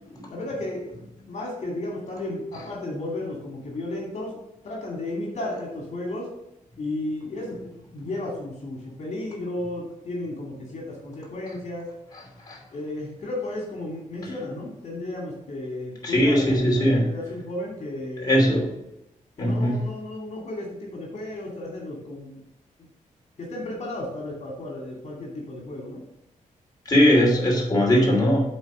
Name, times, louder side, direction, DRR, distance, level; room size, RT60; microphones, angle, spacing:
voice 1, 0.3-0.9 1.3-4.4 4.6-6.3 6.8-7.6 7.9-11.9 12.7-18.3 19.4-22.4 23.4-26.0, left 1 dB, 55° left, -2 dB, 2.5 m, -33 dB
voice 2, 12.1-12.6 14.3-14.4 16.0-17.1 18.2-18.7 19.4-19.8 26.9-28.4, equal, 30° left, -3 dB, 2.8 m, -20 dB
7.9 x 4.5 x 6.2 m, 0.86 s
cardioid pair, 100°, 14 cm